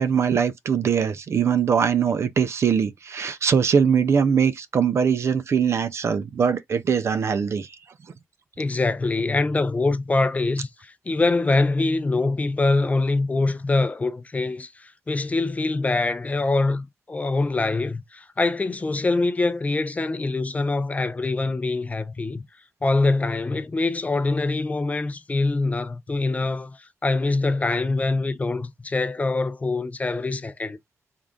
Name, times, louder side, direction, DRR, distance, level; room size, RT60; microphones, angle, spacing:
voice 1, 0.0-7.7, right 7 dB, 60° right, 0.4 m, -22 dB
voice 2, 8.6-22.4 22.8-30.8, left 3 dB, 30° left, 0.5 m, -24 dB
3.6 x 2.4 x 3.6 m
cardioid pair, 90°, 5 cm